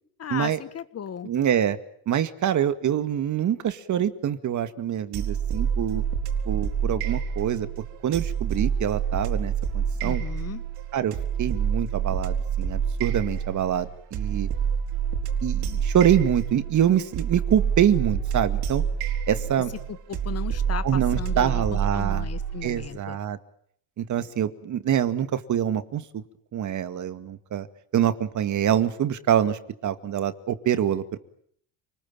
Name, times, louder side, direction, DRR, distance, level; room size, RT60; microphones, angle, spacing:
voice 1, 0.2-1.3 10.0-10.6 20.1-23.2, left 8 dB, 35° left, 13 dB, 1.7 m, -36 dB
voice 2, 1.2-1.8 2.1-6.0 6.5-7.7 8.0-10.2 10.9-14.5 15.4-18.8 19.3-19.7 20.8-22.3 22.6-23.4 24.0-26.2 26.5-27.7 27.9-31.2, right 10 dB, 40° right, 11 dB, 2.1 m, -25 dB
sound 1, 5.1-22.9, right 7 dB, 60° right, 4.4 m, -28 dB
29.0 x 20.5 x 8.9 m, 0.68 s
cardioid pair, 120°, 43 cm